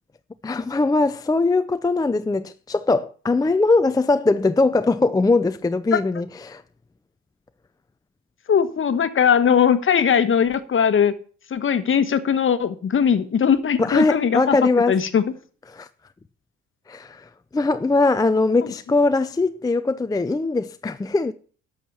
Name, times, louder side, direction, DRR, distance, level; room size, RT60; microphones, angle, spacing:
voice 1, 0.4-6.6 13.8-15.0 15.7-15.9 16.9-21.3, left 3 dB, 10° left, 0.5 m, -21 dB
voice 2, 8.5-11.1 11.5-15.3, left 7 dB, 40° left, 1.3 m, -20 dB
11.5 x 6.4 x 7.2 m
cardioid pair, 90°, 30 cm